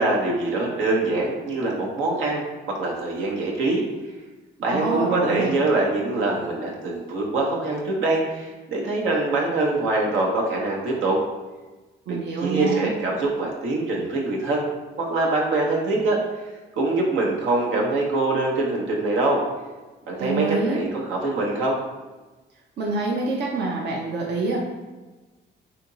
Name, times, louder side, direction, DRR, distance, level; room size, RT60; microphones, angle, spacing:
voice 1, 0.0-2.4 2.7-3.8 4.6-11.2 12.1-14.7 15.0-16.2 16.7-19.4 20.1-21.8, right 2 dB, 85° right, -2 dB, 1.0 m, -24 dB
voice 2, 4.7-5.5 12.1-12.9 20.2-20.8 22.8-24.7, right 3 dB, 60° right, -2 dB, 0.7 m, -26 dB
3.5 x 2.9 x 3.9 m, 1.2 s
cardioid pair, 90°, 20 cm